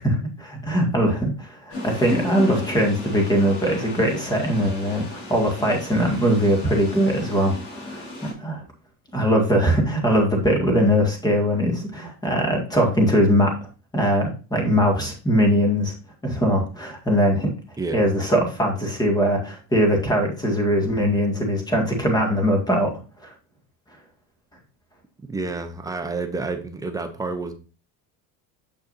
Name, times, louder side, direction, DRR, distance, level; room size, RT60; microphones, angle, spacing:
voice 1, 0.0-8.1 8.4-8.6 9.1-13.5 13.9-15.9 16.2-17.5 17.9-22.9 23.2-23.3, equal, 10° left, 2 dB, 1.9 m, -21 dB
sound 1, 1.7-8.3, left 2 dB, 75° left, 3.5 m, -34 dB
voice 2, 17.8-18.1 25.3-27.5, right 3 dB, 10° right, 6 dB, 0.8 m, -29 dB
7.4 x 6.4 x 2.6 m, 0.34 s
cardioid pair, 145°, 38 cm